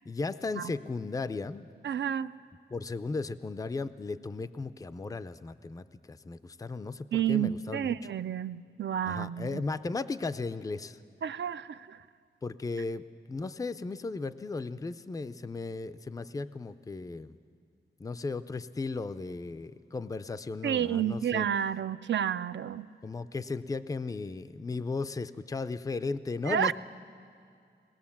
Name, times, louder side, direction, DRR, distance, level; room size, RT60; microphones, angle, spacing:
voice 1, 0.1-1.7 2.7-8.0 9.0-11.0 12.4-13.0 13.3-17.4 18.0-21.5 23.0-26.7, left 3 dB, 20° left, 13 dB, 0.4 m, -36 dB
voice 2, 1.8-2.3 7.1-9.6 11.2-12.0 20.6-22.9 26.4-26.7, right 9 dB, 65° right, 14 dB, 0.4 m, -30 dB
20.5 x 18.0 x 7.2 m, 2.3 s
wide cardioid pair, 135°, 20 cm